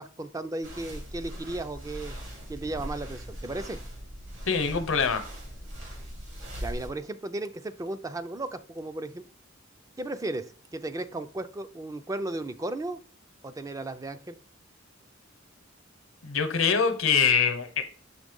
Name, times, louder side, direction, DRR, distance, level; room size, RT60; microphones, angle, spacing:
voice 1, 0.0-2.2 2.5-3.8 6.6-9.3 10.0-13.0 13.4-14.4, right 2 dB, 15° right, 0.4 m, -35 dB
sound 1, 0.6-6.9, equal, 70° right, 2.8 m, -40 dB
voice 2, 4.5-5.2 16.2-17.8, left 6 dB, 80° left, 0.9 m, -24 dB
6.4 x 3.2 x 5.2 m
head